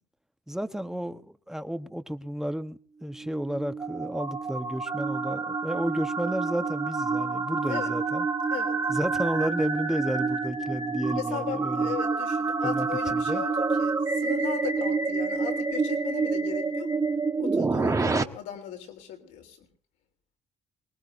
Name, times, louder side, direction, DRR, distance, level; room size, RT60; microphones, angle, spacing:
voice 1, 0.5-8.3 8.9-11.9 12.6-13.5, equal, 5° right, 1.2 m, -32 dB
sound 1, 3.2-18.2, right 4 dB, 25° right, 1.3 m, -28 dB
voice 2, 11.1-16.9 17.4-19.7, left 10 dB, 85° left, 3.4 m, -37 dB
24.0 x 19.5 x 2.7 m
supercardioid pair, 70°, 13 cm